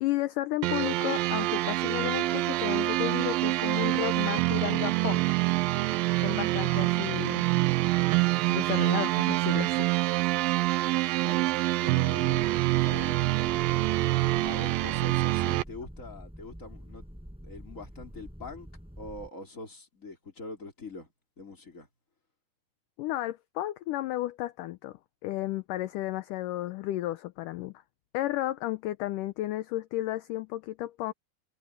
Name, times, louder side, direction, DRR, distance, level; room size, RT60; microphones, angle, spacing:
voice 1, 0.0-5.3 6.2-7.5 8.5-9.9 23.0-27.7 28.1-31.1, left 15 dB, 75° left, 2.1 m, -33 dB
sound 1, 0.6-15.6, right 18 dB, 80° right, 2.3 m, -26 dB
voice 2, 11.8-13.6 14.4-17.1 17.4-18.7 19.0-21.9, left 2 dB, 20° left, 3.9 m, -43 dB
sound 2, 12.2-19.3, equal, ahead, 5.9 m, -46 dB
omnidirectional pair, 4.3 m